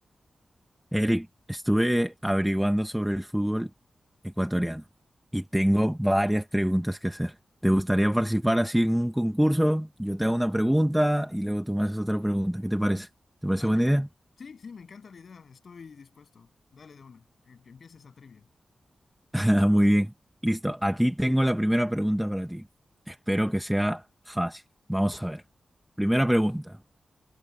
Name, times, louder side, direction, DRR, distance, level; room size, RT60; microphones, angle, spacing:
voice 1, 0.9-3.7 4.2-4.8 5.3-7.3 7.6-13.1 13.4-14.1 19.3-20.1 20.4-22.6 23.1-24.6 24.9-25.4 26.0-26.8, equal, 5° right, 0.9 m, -25 dB
voice 2, 13.5-14.0 14.4-18.5, left 5 dB, 60° left, 7.8 m, -48 dB
wide cardioid pair, 140°, 0 cm